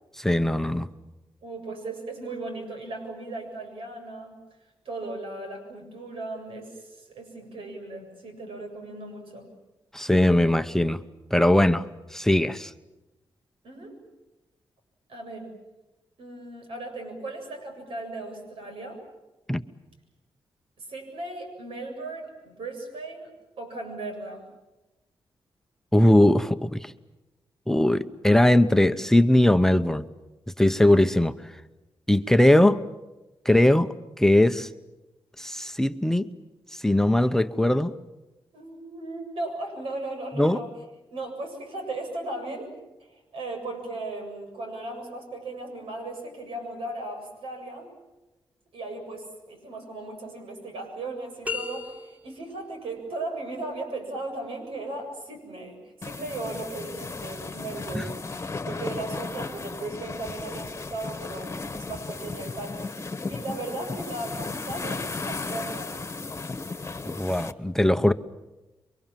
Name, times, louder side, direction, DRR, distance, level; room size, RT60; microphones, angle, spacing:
voice 1, 0.2-0.9 9.9-11.0 11.3-12.7 19.5-19.6 25.9-26.9 27.7-30.0 30.6-31.3 32.1-32.8 33.4-34.7 35.4-36.3 36.7-37.9 40.4-40.6 57.9-58.1 67.1-68.1, left 1 dB, 5° left, 9 dB, 0.8 m, -20 dB
voice 2, 1.4-4.4 4.8-9.5 13.6-14.0 15.1-15.5 16.2-19.0 20.8-24.4 38.5-40.7 41.1-42.7 43.1-47.9 48.7-58.1 58.6-66.0, right 2 dB, 85° right, 4 dB, 7.6 m, -37 dB
sound 1, 51.4-52.5, left 5 dB, 15° right, 3.9 m, -34 dB
sound 2, 56.0-67.5, left 3 dB, 30° left, 1.4 m, -35 dB
28.0 x 24.0 x 7.5 m, 1.1 s
cardioid pair, 95°, 9 cm